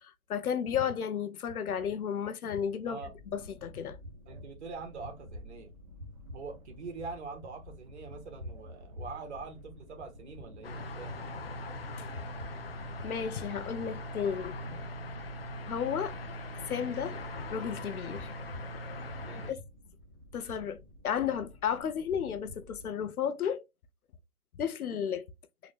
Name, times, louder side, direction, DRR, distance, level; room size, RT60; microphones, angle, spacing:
voice 1, 0.0-3.0 3.3-4.0 13.0-14.5 15.6-16.1 16.7-17.2 17.5-18.3 19.5-19.6 20.3-23.6 24.6-25.2, left 8 dB, 85° left, 0.7 m, -33 dB
sound 1, 3.0-22.9, left 1 dB, 30° right, 0.4 m, -49 dB
voice 2, 4.3-5.7 6.3-11.1 19.2-19.6, right 4 dB, 50° right, 1.2 m, -44 dB
sound 2, 10.6-19.5, left 1 dB, 45° left, 0.4 m, -41 dB
3.7 x 2.1 x 3.1 m
hypercardioid pair, 160°, 43 cm